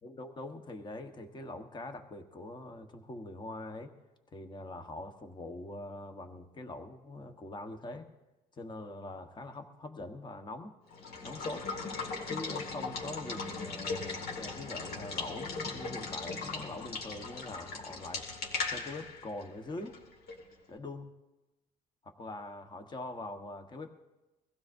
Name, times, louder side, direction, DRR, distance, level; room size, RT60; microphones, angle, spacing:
voice 1, 0.0-3.9 4.3-8.1 8.6-10.7 11.2-11.6 12.3-18.2 18.7-20.0 20.7-21.1 22.0-24.0, left 2 dB, 25° left, 6 dB, 1.2 m, -43 dB
Water / Water tap faucet / Liquid, 10.9-20.5, left 4 dB, 65° left, 2.2 m, -38 dB
22.5 x 15.5 x 2.6 m, 1.1 s
cardioid pair, 110°, 17 cm